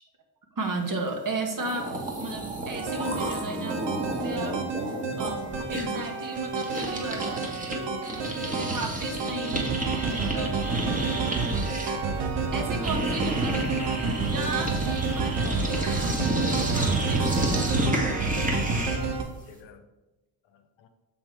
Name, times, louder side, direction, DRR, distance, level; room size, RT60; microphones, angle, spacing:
voice 1, 0.6-1.9 2.2-3.8 4.2-4.6 5.2-8.0 8.6-9.7 10.1-10.6 12.5-13.7 14.2-17.9, right 3 dB, 45° right, 2 dB, 1.6 m, -35 dB
sound 1, 1.3-1.4 1.6-7.8 8.0-19.1, right 1 dB, 15° right, 1.6 m, -30 dB
sound 2, 2.7-19.2, right 4 dB, 65° right, 1.0 m, -30 dB
voice 2, 11.6-13.2 19.0-19.8 20.4-20.9, left 7 dB, 80° left, 8 dB, 0.8 m, -48 dB
6.2 x 3.8 x 4.8 m, 1.1 s
supercardioid pair, 50°, 45 cm